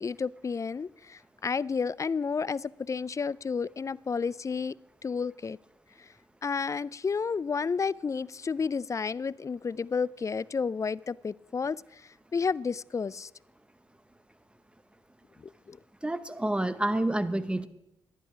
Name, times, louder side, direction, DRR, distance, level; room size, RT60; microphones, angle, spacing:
voice 1, 0.0-4.7 5.0-5.6 6.0-6.1 6.4-13.3 15.4-15.8, left 5 dB, 30° left, 23 dB, 0.3 m, -31 dB
voice 2, 16.0-17.7, right 1 dB, 10° right, 13 dB, 0.8 m, -28 dB
11.5 x 9.9 x 4.9 m, 0.92 s
hypercardioid pair, 40°, 10 cm